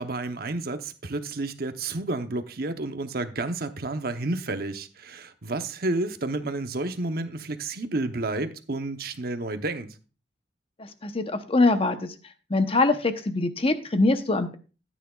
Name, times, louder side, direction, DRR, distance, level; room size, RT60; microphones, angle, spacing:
voice 1, 0.0-9.9, right 2 dB, 55° right, 0.9 m, -30 dB
voice 2, 10.8-12.1 12.5-14.6, left 2 dB, 35° left, 0.9 m, -23 dB
14.0 x 9.3 x 2.4 m
head